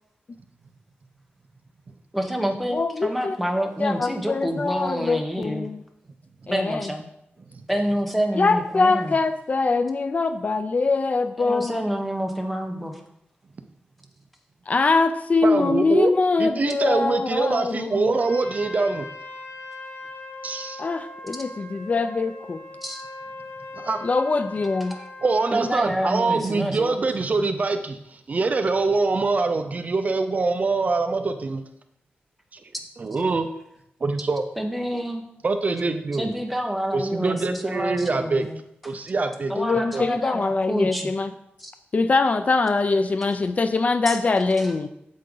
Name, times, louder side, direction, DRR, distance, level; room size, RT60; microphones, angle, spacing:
voice 1, 2.1-5.7 6.5-7.1 7.7-9.1 11.4-13.0 22.8-23.0 24.9-25.0 25.5-27.0 27.5-27.6 34.6-35.2 36.2-38.6 39.5-41.1 41.6-41.7 44.0-44.2 44.6-44.7, equal, ahead, 2 dB, 1.2 m, -28 dB
voice 2, 2.7-3.4 3.8-5.8 6.5-6.9 8.4-11.8 14.7-18.1 20.8-22.6 24.0-24.9 39.6-41.3 41.9-44.9, left 3 dB, 40° left, 10 dB, 0.4 m, -23 dB
voice 3, 15.4-16.1 16.4-19.1 20.4-20.8 23.7-24.0 25.2-31.6 32.5-32.7 33.0-33.5 34.0-34.4 35.4-36.3 36.9-38.5 38.8-40.1, right 3 dB, 40° right, 8 dB, 0.6 m, -24 dB
Trumpet, 18.1-25.8, left 2 dB, 70° left, 1.3 m, -40 dB
8.4 x 7.8 x 3.9 m, 0.78 s
wide cardioid pair, 145°, 4 cm